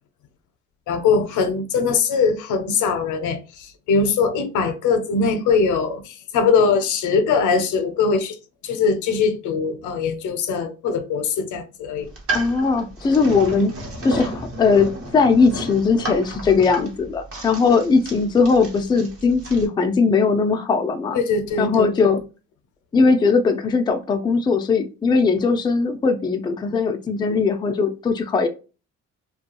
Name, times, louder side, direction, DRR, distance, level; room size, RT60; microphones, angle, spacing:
voice 1, 0.9-8.4 8.6-12.1 13.6-13.7 21.1-22.1, left 5 dB, 80° left, 0.6 m, -21 dB
sound 1, 12.0-19.7, right 2 dB, 50° right, 0.9 m, -33 dB
voice 2, 12.3-13.7 14.0-21.2 21.6-22.2 22.9-28.5, left 4 dB, 15° left, 0.3 m, -19 dB
2.3 x 2.2 x 2.8 m
cardioid pair, 90°, 30 cm